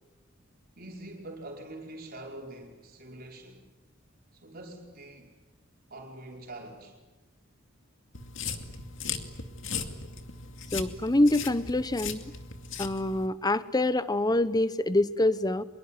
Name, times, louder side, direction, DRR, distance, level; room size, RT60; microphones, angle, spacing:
voice 1, 0.8-3.6 4.3-5.4 5.9-7.0, right 1 dB, 50° right, 0 dB, 5.1 m, -44 dB
sound 1, 8.1-13.3, left 6 dB, 70° left, 2.4 m, -38 dB
voice 2, 10.7-12.2 12.8-15.6, left 1 dB, 20° left, 14 dB, 0.9 m, -25 dB
25.0 x 23.0 x 9.7 m, 1.1 s
head